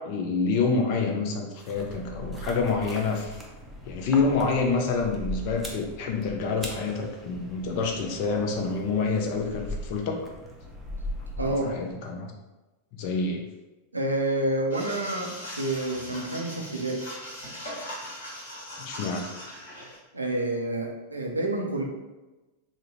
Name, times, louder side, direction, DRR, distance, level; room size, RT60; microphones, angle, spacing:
voice 1, 0.0-3.4 3.8-10.2 11.4-12.3 13.0-13.4 18.8-19.3, left 4 dB, 45° left, 2 dB, 0.5 m, -27 dB
sound 1, 1.6-11.9, equal, 5° right, 0.5 m, -39 dB
voice 2, 11.4-11.8 13.9-17.1 20.1-21.8, right 1 dB, 80° right, 1 dB, 0.5 m, -28 dB
sound 2, 14.7-20.0, equal, 65° left, 1.0 m, -40 dB
3.6 x 2.1 x 2.9 m, 1.1 s
figure-of-eight pair, 90°, 0 cm